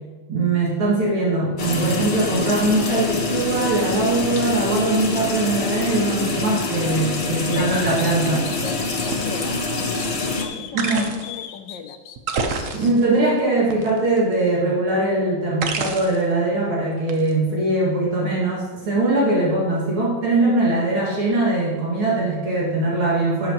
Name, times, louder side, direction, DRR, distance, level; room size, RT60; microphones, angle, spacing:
voice 1, 0.3-8.5 10.7-11.1 12.7-23.5, right 2 dB, 75° right, -6 dB, 3.0 m, -21 dB
sound 1, 1.6-10.5, left 3 dB, 45° left, 0.6 m, -25 dB
sound 2, 7.5-9.5 9.9-12.9, left 9 dB, 90° left, 1.7 m, -40 dB
voice 2, 7.5-8.0 8.5-9.6 10.0-12.0 19.1-19.4, left 8 dB, 70° left, 9 dB, 1.2 m, -37 dB
sound 3, 8.2-8.4 9.1-9.2 10.8-11.4 12.2-13.2 13.7-14.3 15.6-16.3 17.1-17.3, right 4 dB, 55° right, 0.9 m, -27 dB
12.5 x 8.7 x 3.0 m, 1.3 s
omnidirectional pair, 2.3 m